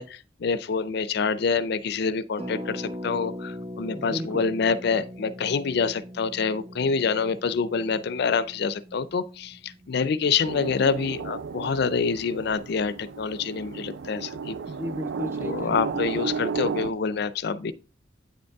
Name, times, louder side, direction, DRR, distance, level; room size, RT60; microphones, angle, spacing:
voice 1, 0.0-14.6 15.4-17.7, left 5 dB, 60° left, 0.4 m, -26 dB
Harp, 2.4-12.0 12.2-12.3 12.5-12.8, equal, 35° right, 2.1 m, -41 dB
voice 2, 3.9-4.4 14.7-16.3, equal, 15° right, 0.4 m, -35 dB
sound 1, 10.5-16.9, right 5 dB, 80° right, 0.4 m, -33 dB
8.6 x 5.3 x 3.4 m
head